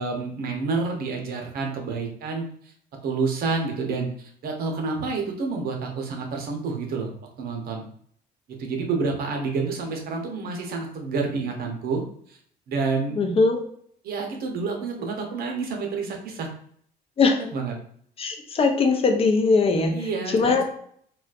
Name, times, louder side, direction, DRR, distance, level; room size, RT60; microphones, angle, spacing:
voice 1, 0.0-2.4 3.0-4.1 4.4-7.1 7.4-7.8 8.5-12.0 12.3-12.4 12.7-13.2 14.0-16.5 17.5-17.7 19.9-20.6, right 4 dB, 65° right, 2 dB, 0.9 m, -28 dB
voice 2, 13.2-13.6 17.2-17.4 18.2-20.6, left 4 dB, 35° left, 3 dB, 0.6 m, -21 dB
4.0 x 2.3 x 2.5 m, 0.63 s
cardioid pair, 110°, 17 cm